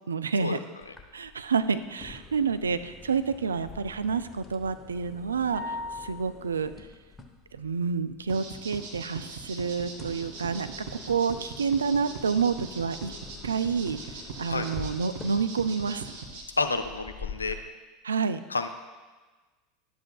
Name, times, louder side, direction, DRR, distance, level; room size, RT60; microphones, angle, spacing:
voice 1, 0.1-0.6 1.1-6.7 7.6-10.7 11.1-13.1 13.4-16.1 18.0-18.4, right 5 dB, 75° right, 11 dB, 0.3 m, -29 dB
sound 1, 0.8-17.6, left 4 dB, 10° left, 0.9 m, -47 dB
sound 2, 5.5-6.6, left 2 dB, 30° right, 2.2 m, -37 dB
sound 3, 8.3-16.4, right 4 dB, 60° right, 1.6 m, -40 dB
voice 2, 16.6-17.6 18.5-18.7, left 3 dB, 85° left, 7 dB, 0.5 m, -29 dB
11.5 x 7.8 x 2.3 m, 1.3 s
figure-of-eight pair, 80°, 0 cm